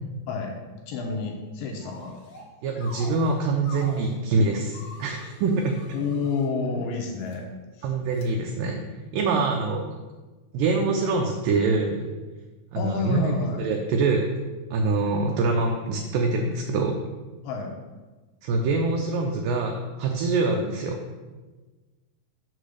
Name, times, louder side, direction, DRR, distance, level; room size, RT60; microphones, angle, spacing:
voice 1, 0.9-2.2 5.9-7.5 7.8-7.9 12.8-13.6 17.4-17.7, left 4 dB, 75° left, 1 dB, 2.3 m, -29 dB
sound 1, 1.8-2.5 2.8-4.2 4.7-6.5 7.1-7.4 8.1-8.3, left 1 dB, 55° left, 1.9 m, -45 dB
voice 2, 2.6-5.8 7.8-8.8 9.1-9.8 10.5-12.1 12.7-13.3 13.6-14.4 14.7-17.0 18.4-21.0, right 3 dB, 80° right, 2 dB, 2.0 m, -24 dB
6.7 x 4.0 x 6.3 m, 1.3 s
omnidirectional pair, 4.5 m